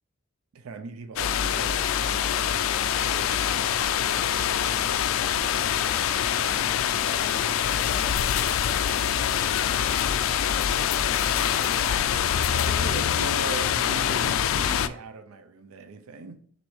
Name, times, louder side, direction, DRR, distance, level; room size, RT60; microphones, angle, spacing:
voice 1, 0.5-2.5 2.9-5.0 6.3-6.7 9.4-9.5 12.5-16.4, right 4 dB, 85° right, 0.4 m, -40 dB
sound 1, 1.2-14.9, left 9 dB, 70° left, 0.3 m, -25 dB
voice 2, 6.4-12.6, left 1 dB, 25° left, 0.7 m, -46 dB
6.2 x 2.6 x 3.0 m
head